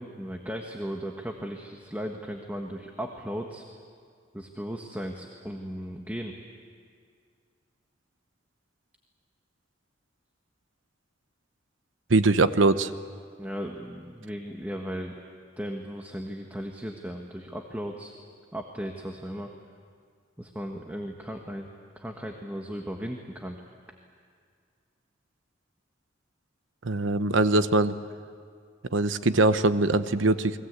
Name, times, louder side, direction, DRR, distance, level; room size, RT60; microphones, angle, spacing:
voice 1, 0.0-3.6 4.3-6.4 13.4-15.1 15.6-18.1 18.5-19.5 20.4-21.7 21.9-23.6, equal, 10° right, 2 dB, 1.4 m, -36 dB
voice 2, 12.1-12.9 26.8-27.9 28.9-30.6, right 2 dB, 85° right, 12 dB, 1.0 m, -22 dB
29.5 x 22.0 x 8.3 m, 2.1 s
head